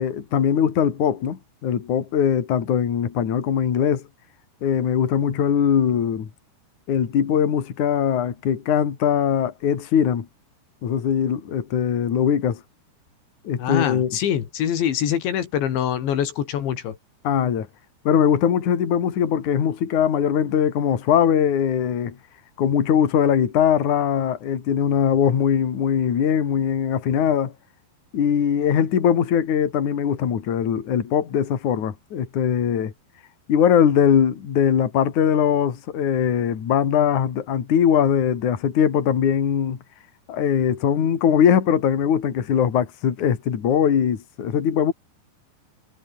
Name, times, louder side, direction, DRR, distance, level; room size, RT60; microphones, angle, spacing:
voice 1, 0.0-4.0 4.6-6.3 6.9-10.3 10.8-12.6 13.4-14.2 17.2-17.7 18.1-22.2 22.6-27.5 28.1-32.9 33.5-39.8 40.3-44.9, left 8 dB, 50° left, 3.7 m, -21 dB
voice 2, 13.6-17.0, left 9 dB, 80° left, 4.9 m, -24 dB
omnidirectional pair, 5.2 m